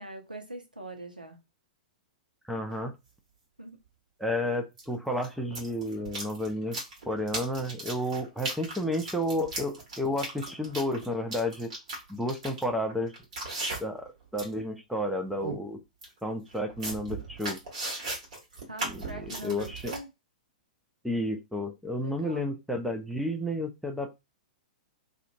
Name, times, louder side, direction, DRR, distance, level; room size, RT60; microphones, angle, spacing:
voice 1, 0.0-1.4 3.6-3.8 18.6-20.1 22.0-22.4, right 2 dB, 85° right, 0.6 m, -42 dB
voice 2, 2.5-2.9 4.2-6.8 7.1-11.7 12.1-13.1 13.8-15.8 16.2-17.6 18.8-19.9 21.0-24.2, left 1 dB, ahead, 0.4 m, -31 dB
sound 1, 2.7-2.8 4.8-4.9 5.2-14.1 14.3-14.6 15.0-15.1 15.4-15.6 16.0-16.1 16.5-20.0, right 2 dB, 55° right, 1.2 m, -37 dB
2.5 x 2.1 x 2.6 m
figure-of-eight pair, 105°, 4 cm